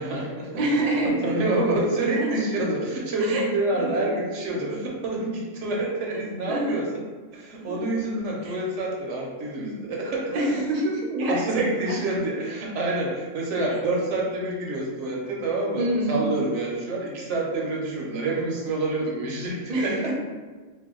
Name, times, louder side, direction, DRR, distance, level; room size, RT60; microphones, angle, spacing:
voice 1, 0.0-0.6 1.2-6.9 7.3-10.3 11.2-20.1, right 2 dB, 80° right, -2 dB, 1.0 m, -27 dB
voice 2, 0.6-1.4 2.2-2.3 3.3-3.4 3.8-3.9 6.5-6.8 7.6-7.8 8.4-8.5 10.3-12.0 13.7-13.8 15.8-16.2 19.7-20.1, right 1 dB, 50° right, -2 dB, 0.5 m, -26 dB
2.7 x 2.2 x 3.6 m, 1.4 s
omnidirectional pair, 1.2 m